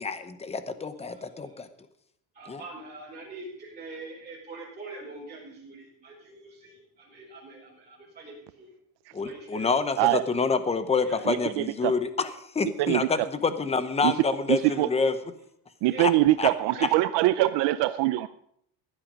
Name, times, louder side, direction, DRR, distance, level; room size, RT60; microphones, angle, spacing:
voice 1, 0.0-1.7 2.5-2.6 9.1-15.1 16.0-16.1 16.4-16.5 16.8-16.9, left 4 dB, 15° left, 11 dB, 0.9 m, -27 dB
voice 2, 1.1-1.5 2.3-8.7 9.2-9.7 11.0-11.4 15.8-16.1 16.6-17.0 17.4-17.5, right 3 dB, 20° right, -8 dB, 4.7 m, -44 dB
voice 3, 11.3-11.9 12.8-13.1 14.0-14.1 14.5-14.9 15.8-18.3, right 16 dB, 90° right, 12 dB, 0.6 m, -23 dB
16.0 x 10.5 x 5.1 m, 0.71 s
cardioid pair, 165°, 41 cm